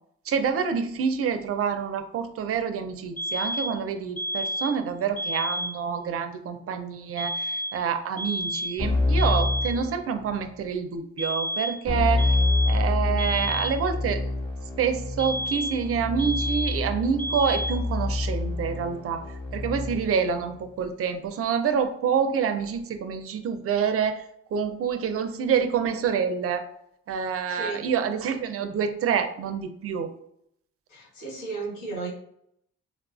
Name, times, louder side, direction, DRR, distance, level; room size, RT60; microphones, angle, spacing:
voice 1, 0.3-12.4 12.7-14.2 14.8-19.3 19.5-24.2 24.5-26.7 27.1-30.1, right 7 dB, 50° right, 8 dB, 0.4 m, -27 dB
sound 1, 3.2-3.8 4.2-4.8 5.2-5.8 7.2-7.8 8.2-8.8 9.2-9.8 11.2-11.8 12.2-12.8 13.2-13.8 15.2-15.9 16.2-16.9 17.2-17.9, equal, 30° left, 0.7 m, -31 dB
Keyboard (musical), 8.8-10.5 11.9-20.2, left 2 dB, 5° left, 1.1 m, -27 dB
voice 2, 27.5-27.8 30.9-32.1, right 3 dB, 75° left, -5 dB, 1.4 m, -34 dB
3.5 x 2.3 x 2.4 m, 0.72 s
cardioid pair, 90°, 30 cm